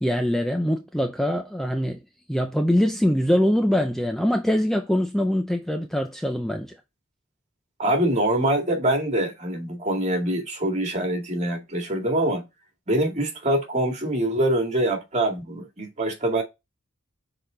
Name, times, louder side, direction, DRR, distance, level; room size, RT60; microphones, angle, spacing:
voice 1, 0.0-2.0 2.3-6.8, equal, ahead, 0.5 m, -23 dB
voice 2, 7.8-12.4 12.9-16.4, right 1 dB, 35° right, 2.0 m, -24 dB
6.4 x 4.0 x 3.8 m
head